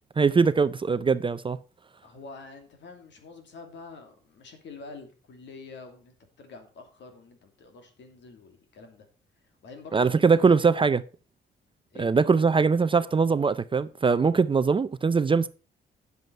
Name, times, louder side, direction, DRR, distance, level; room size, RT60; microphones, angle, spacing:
voice 1, 0.2-1.6 9.9-11.0 12.0-15.5, right 5 dB, 25° right, 0.5 m, -22 dB
voice 2, 2.0-9.1 9.6-10.5 11.9-12.1, left 4 dB, 65° left, 2.7 m, -46 dB
9.4 x 7.8 x 4.5 m
cardioid pair, 90°, 20 cm